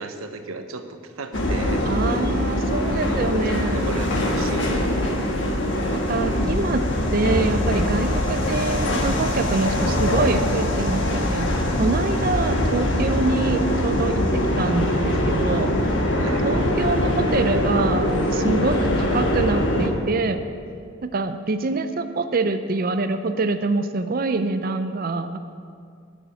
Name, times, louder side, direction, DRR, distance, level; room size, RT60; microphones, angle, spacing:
voice 1, 0.0-1.8 2.8-5.0 16.2-16.5, right 3 dB, 90° right, 7 dB, 0.8 m, -36 dB
sound 1, 1.3-19.9, left 1 dB, 60° left, 1.4 m, -22 dB
voice 2, 1.8-3.9 5.9-6.9 7.1-11.5 11.8-15.7 16.4-20.4 21.1-25.4, right 3 dB, 45° right, 9 dB, 0.5 m, -25 dB
9.9 x 6.3 x 8.7 m, 2.3 s
head